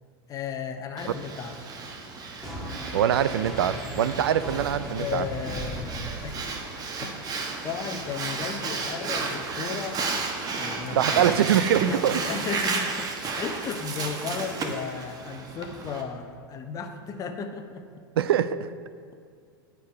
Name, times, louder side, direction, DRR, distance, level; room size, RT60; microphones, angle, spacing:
voice 1, 0.3-1.6 5.0-6.4 7.0-7.2 7.6-10.0 10.6-11.5 11.8-17.9, left 6 dB, 30° left, 6 dB, 0.7 m, -35 dB
Breathing, 1.0-16.0, right 4 dB, 30° right, 1.0 m, -33 dB
sound 1, 2.4-6.7, right 1 dB, ahead, 1.4 m, -37 dB
voice 2, 2.9-5.3 11.0-12.2 18.2-18.7, right 10 dB, 85° right, 14 dB, 0.4 m, -23 dB
10.0 x 4.7 x 4.7 m, 2.2 s
hypercardioid pair, 110°, 12 cm